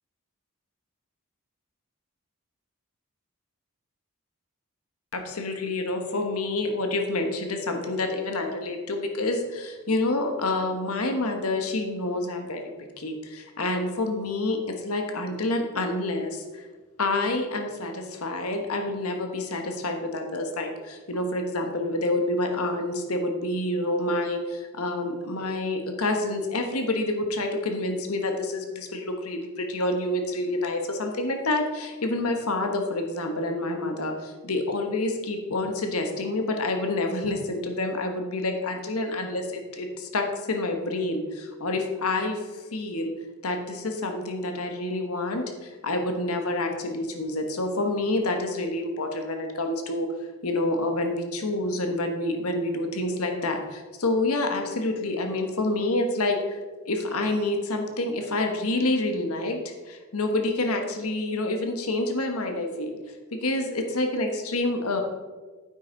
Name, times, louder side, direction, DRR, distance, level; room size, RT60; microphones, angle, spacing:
voice 1, 5.1-16.6 17.0-43.1 43.4-50.1 50.4-56.6 56.9-62.9 63.3-65.0, left 2 dB, 85° left, 4 dB, 1.4 m, -28 dB
9.9 x 8.1 x 4.0 m, 1.3 s
head